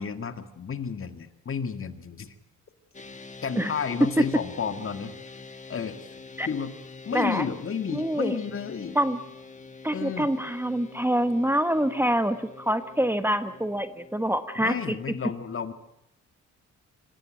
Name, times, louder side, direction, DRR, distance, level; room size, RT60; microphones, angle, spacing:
voice 1, 0.0-2.3 3.4-5.2 5.7-6.1 6.5-6.7 7.1-9.0 9.9-10.3 14.6-15.7, left 6 dB, 45° left, 10 dB, 1.9 m, -32 dB
sound 1, 2.9-15.1, left 4 dB, 25° left, 1.8 m, -46 dB
voice 2, 7.1-7.5 7.9-8.4 8.9-9.2 9.8-14.7, equal, 5° right, 11 dB, 1.2 m, -26 dB
26.0 x 16.0 x 9.1 m, 0.85 s
cardioid pair, 90°, 30 cm